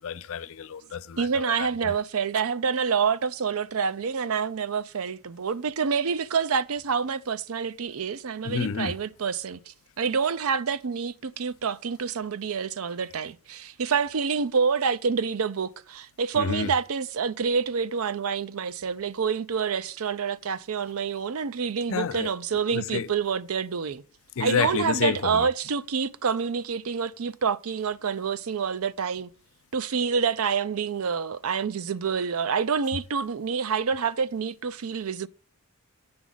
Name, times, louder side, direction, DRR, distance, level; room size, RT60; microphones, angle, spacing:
voice 1, 0.0-1.9 8.4-9.0 16.3-16.7 21.9-23.1 24.4-25.5, left 7 dB, 65° left, 0.5 m, -30 dB
voice 2, 1.2-24.0 24.4-29.3 29.7-35.3, right 6 dB, 70° right, 0.5 m, -27 dB
8.7 x 6.0 x 3.9 m
head